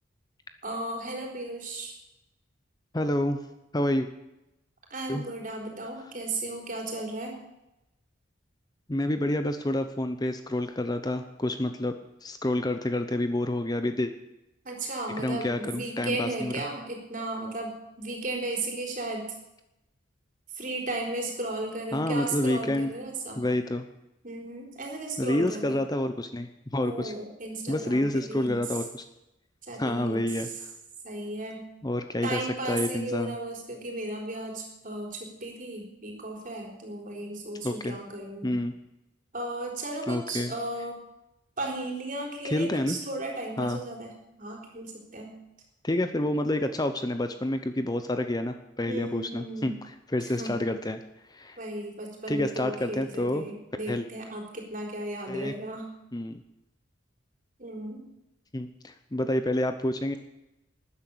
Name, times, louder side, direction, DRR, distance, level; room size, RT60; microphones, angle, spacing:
voice 1, 0.6-2.0 4.9-7.4 14.6-19.3 20.5-23.4 24.2-25.8 26.8-28.6 29.6-30.2 31.0-31.6 32.2-38.5 39.3-41.0 41.6-44.1 44.4-45.3 48.9-49.8 50.2-50.6 51.6-55.9 57.6-58.0, right 2 dB, 45° right, 1 dB, 4.1 m, -35 dB
voice 2, 2.9-3.4 3.7-4.1 5.1-5.2 8.9-11.9 12.2-14.1 15.2-16.6 21.9-22.9 23.4-23.8 25.2-27.1 27.7-29.0 29.8-30.5 31.8-32.4 32.7-33.4 37.6-38.0 38.4-38.7 40.1-40.5 42.4-43.0 43.6-43.8 45.8-51.0 51.3-51.6 52.3-53.4 53.9-54.1 55.3-55.5 56.1-56.4 58.5-60.2, left 1 dB, 20° left, 8 dB, 0.8 m, -28 dB
13.0 x 10.0 x 8.6 m, 0.90 s
head